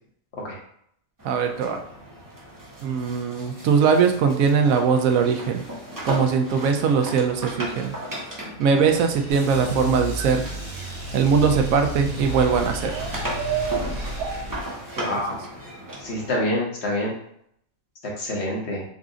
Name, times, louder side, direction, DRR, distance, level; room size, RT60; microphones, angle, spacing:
sound 1, 1.2-11.8 12.1-16.4, equal, 20° right, 0.7 m, -37 dB
voice 1, 1.2-1.8 2.8-5.6 6.0-7.9 8.6-10.5 11.1-13.0 15.0-15.2, right 6 dB, 80° right, 5 dB, 1.0 m, -21 dB
sound 2, 8.9-14.4, right 7 dB, 60° right, 1.3 m, -34 dB
sound 3, 9.3-14.6, left 1 dB, 40° right, 1.0 m, -33 dB
voice 2, 15.0-15.4 16.0-17.1 18.2-18.8, left 1 dB, 55° left, -3 dB, 1.3 m, -27 dB
4.1 x 2.4 x 3.7 m, 0.70 s
omnidirectional pair, 1.4 m